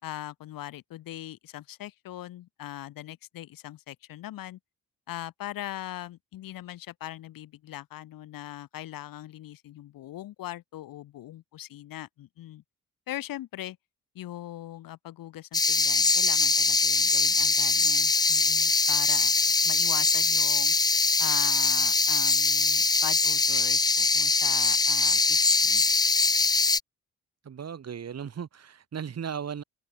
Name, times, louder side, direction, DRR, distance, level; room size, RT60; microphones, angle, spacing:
voice 1, 0.0-4.6 5.1-12.6 13.1-13.8 14.1-19.3 19.6-20.7 21.2-25.9, left 14 dB, 75° left, 2.9 m, -41 dB
sound 1, 15.5-26.8, left 3 dB, 10° left, 0.4 m, -23 dB
voice 2, 27.4-29.6, right 7 dB, 50° right, 2.4 m, -36 dB
supercardioid pair, 70°, 34 cm